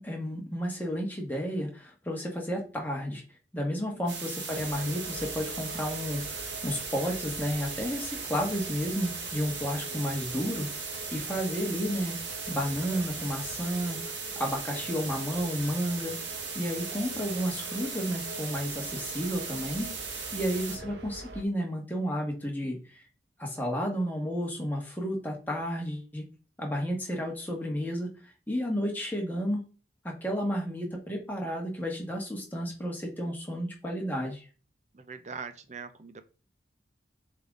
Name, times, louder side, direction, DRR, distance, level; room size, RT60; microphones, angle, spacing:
voice 1, 0.0-3.2 3.5-12.1 12.5-14.0 14.4-16.1 16.5-19.9 20.3-23.0 23.4-26.2 26.6-28.1 28.5-29.7 30.0-34.5, equal, 10° left, -1 dB, 1.5 m, -32 dB
sound 1, 4.1-20.8, right 5 dB, 85° right, 1.7 m, -38 dB
sound 2, 4.5-21.4, right 2 dB, 70° right, 1.0 m, -45 dB
voice 2, 9.9-10.4 11.5-11.7 20.5-21.0 34.9-36.2, right 5 dB, 40° right, 11 dB, 0.6 m, -44 dB
7.3 x 3.9 x 3.7 m, 0.35 s
head